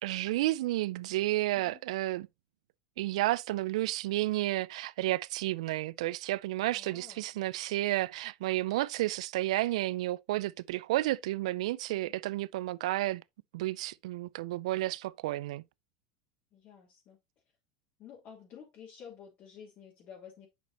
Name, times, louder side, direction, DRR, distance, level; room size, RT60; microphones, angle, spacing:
voice 1, 0.0-2.3 3.0-13.2 13.5-15.6, right 16 dB, 80° right, 0.4 m, -31 dB
voice 2, 6.7-7.3 12.0-12.1 16.5-17.2 18.0-20.5, left 7 dB, 45° left, 3.3 m, -51 dB
8.2 x 5.9 x 2.9 m
supercardioid pair, 120°, 3 cm